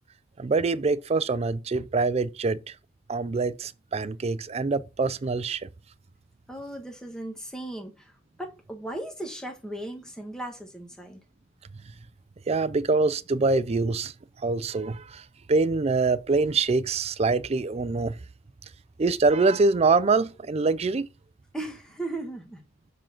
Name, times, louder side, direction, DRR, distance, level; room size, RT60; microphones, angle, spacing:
voice 1, 0.4-2.6 3.1-5.6 12.5-14.1 14.4-15.2 15.5-18.2 19.0-21.1, right 3 dB, 30° right, 0.4 m, -24 dB
voice 2, 6.5-8.1 8.4-11.2 21.5-22.6, right 1 dB, 5° left, 1.4 m, -37 dB
6.8 x 3.8 x 5.8 m
head